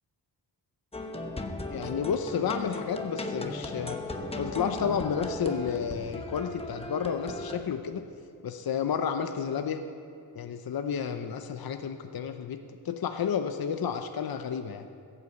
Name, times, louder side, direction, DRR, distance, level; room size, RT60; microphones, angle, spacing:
sound 1, 0.9-7.6, left 2 dB, 15° left, 1.0 m, -37 dB
voice 1, 1.7-4.0 4.4-8.0 8.4-9.8 10.4-14.9, left 7 dB, 60° left, 7 dB, 0.7 m, -31 dB
16.0 x 8.7 x 7.9 m, 2.5 s
wide cardioid pair, 120°, 42 cm